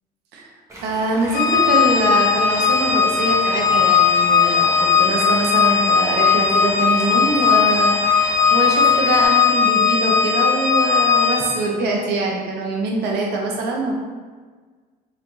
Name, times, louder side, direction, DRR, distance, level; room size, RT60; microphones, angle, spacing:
Stream, 0.7-9.2, right 1 dB, 20° right, 1.2 m, -36 dB
voice 1, 0.8-13.9, right 2 dB, 80° right, -1 dB, 0.9 m, -23 dB
Organ, 1.3-11.7, left 6 dB, 80° left, 0.5 m, -17 dB
4.7 x 3.5 x 2.7 m, 1.5 s
cardioid pair, 110°, 17 cm